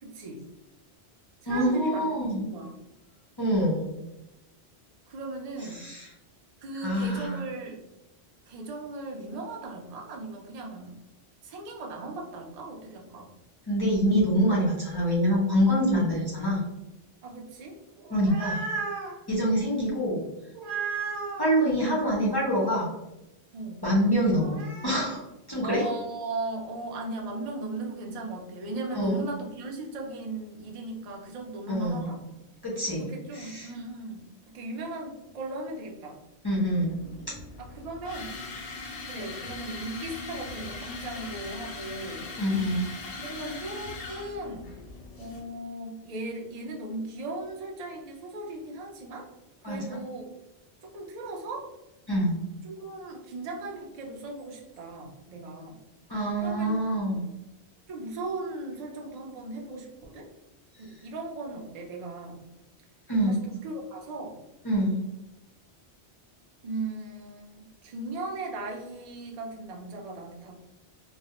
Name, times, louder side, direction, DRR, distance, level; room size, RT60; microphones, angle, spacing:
voice 1, 0.0-0.4 1.4-2.0 2.4-2.7 5.1-5.8 6.6-7.8 8.5-11.0 11.4-13.3 17.2-17.8 23.5-23.9 25.6-32.2 33.0-36.2 37.6-38.3 39.1-42.3 43.2-44.7 45.2-49.3 49.6-50.2 50.8-51.7 52.6-55.8 56.4-56.8 57.1-57.2 57.9-60.3 60.8-62.4 63.3-64.4 66.6-70.5, right 2 dB, 55° right, 0 dB, 0.4 m, -37 dB
voice 2, 1.5-2.4 3.4-3.8 5.7-6.1 6.8-7.4 13.7-16.6 18.1-18.6 19.3-20.2 21.4-22.9 23.8-24.6 24.8-25.9 28.9-29.2 31.7-32.2 32.6-33.1 33.3-33.7 36.4-36.9 42.4-42.8 49.6-50.0 52.1-52.4 56.1-57.2 63.1-63.4 64.6-65.0, equal, 35° left, -6 dB, 0.4 m, -25 dB
sound 1, 18.0-19.1 20.6-21.5 24.3-25.1, right 4 dB, 85° right, 1.0 m, -34 dB
sound 2, 36.7-45.4, left 3 dB, 65° left, 0.7 m, -40 dB
2.3 x 2.0 x 2.8 m, 0.96 s
omnidirectional pair, 1.1 m